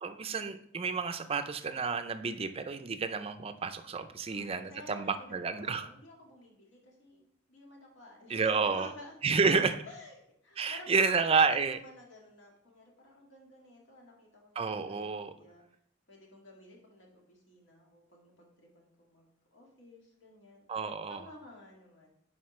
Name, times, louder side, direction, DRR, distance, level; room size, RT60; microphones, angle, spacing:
voice 1, 0.0-5.9 8.3-8.9 9.2-9.8 10.6-11.8 14.6-15.3 20.7-21.3, right 5 dB, 30° right, 9 dB, 0.5 m, -30 dB
voice 2, 4.2-8.4 8.7-9.2 9.9-10.2 10.4-14.6 14.9-15.6 16.1-20.7 21.1-22.1, left 2 dB, 65° left, -1 dB, 1.9 m, -53 dB
10.0 x 4.3 x 3.2 m, 0.69 s
head